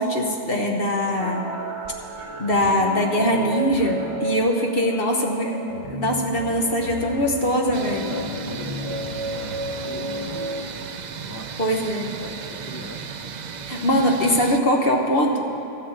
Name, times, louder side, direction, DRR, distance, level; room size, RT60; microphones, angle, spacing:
voice 1, 0.0-1.4 2.4-8.1 11.6-12.1 13.7-15.4, equal, 45° left, 2 dB, 1.2 m, -22 dB
sound 1, 1.2-10.6, right 1 dB, 55° right, 1.2 m, -32 dB
sound 2, 7.7-14.6, right 6 dB, 75° right, 0.4 m, -35 dB
voice 2, 7.8-10.8 11.2-11.6 12.2-13.1, left 1 dB, 15° left, 2 dB, 0.6 m, -39 dB
12.5 x 6.3 x 8.3 m, 3.0 s
omnidirectional pair, 1.4 m